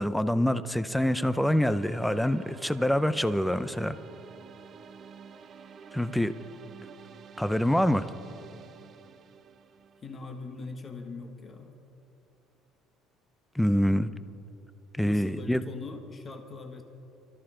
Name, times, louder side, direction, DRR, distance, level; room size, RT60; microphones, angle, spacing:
voice 1, 0.0-4.0 5.9-6.3 7.4-8.1 13.6-14.1 14.9-15.6, equal, ahead, 13 dB, 0.4 m, -25 dB
sound 1, 0.9-10.9, right 6 dB, 35° right, 0.7 m, -49 dB
voice 2, 10.0-11.8 14.0-14.2 15.0-16.8, left 3 dB, 25° left, 5 dB, 1.2 m, -41 dB
23.5 x 13.5 x 3.8 m, 2.7 s
cardioid pair, 155°, 0 cm